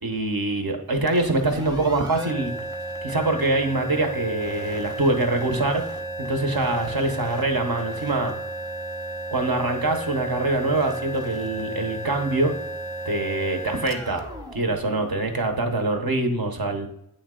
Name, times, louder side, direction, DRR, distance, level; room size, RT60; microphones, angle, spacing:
voice 1, 0.0-2.6 3.0-5.8 6.2-8.3 9.3-12.6 13.1-14.2 14.5-16.9, right 2 dB, 65° right, 4 dB, 0.9 m, -24 dB
sound 1, 1.0-15.6, right 2 dB, 10° right, 0.7 m, -34 dB
8.4 x 3.2 x 3.7 m, 0.80 s
wide cardioid pair, 45°, 39 cm